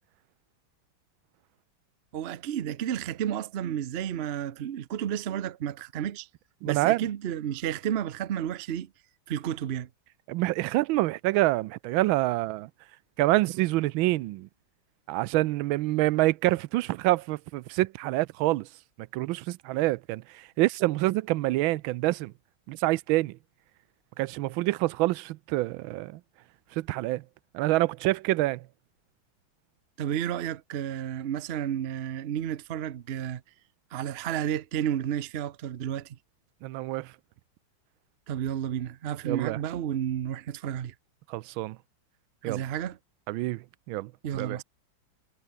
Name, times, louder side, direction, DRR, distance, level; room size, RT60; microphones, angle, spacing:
voice 1, 2.1-6.3 6.6-8.9 9.3-9.9 30.0-33.4 33.9-36.2 38.3-40.9 42.4-43.0 44.2-44.6, right 10 dB, 65° right, 0.6 m, -31 dB
voice 2, 6.6-7.0 10.3-12.7 13.2-14.5 15.1-18.7 19.1-22.3 22.7-23.4 24.2-26.2 26.8-27.2 27.5-28.6 36.6-37.1 39.2-39.6 41.3-41.8 42.4-42.6 43.3-44.6, right 18 dB, 90° right, 1.4 m, -27 dB
omnidirectional pair, 2.1 m